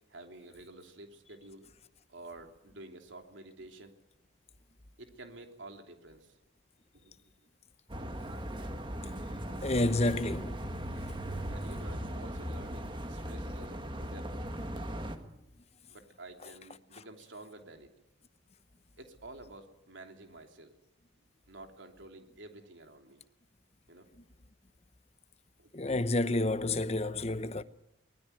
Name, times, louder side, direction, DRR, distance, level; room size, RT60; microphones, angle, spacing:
voice 1, 0.1-1.7 2.1-3.9 5.0-6.4 7.0-7.3 9.5-9.6 11.2-14.5 15.9-17.9 19.0-20.7 21.5-23.2 23.9-24.1 25.6-25.7, right 2 dB, 75° right, 3.1 m, -50 dB
sound 1, 7.9-15.2, equal, 25° right, 1.8 m, -38 dB
voice 2, 9.6-10.8 16.9-17.0 25.7-27.6, left 2 dB, 35° left, 0.9 m, -30 dB
23.5 x 20.0 x 9.2 m
head